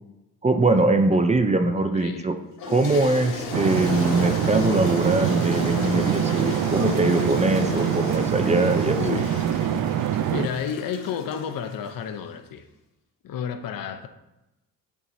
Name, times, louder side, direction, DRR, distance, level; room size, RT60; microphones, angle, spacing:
voice 1, 0.4-2.3 2.7-9.0, right 2 dB, 20° right, 7 dB, 0.7 m, -22 dB
voice 2, 1.6-2.3 9.0-9.3 10.0-10.1 10.3-12.6 13.2-14.1, left 7 dB, 65° left, 8 dB, 0.8 m, -31 dB
Toilet flush, 2.6-11.9, left 4 dB, 80° left, 1.7 m, -34 dB
sound 1, 3.5-10.5, right 10 dB, 60° right, 0.5 m, -24 dB
8.5 x 4.6 x 2.8 m, 0.95 s
supercardioid pair, 75°, 37 cm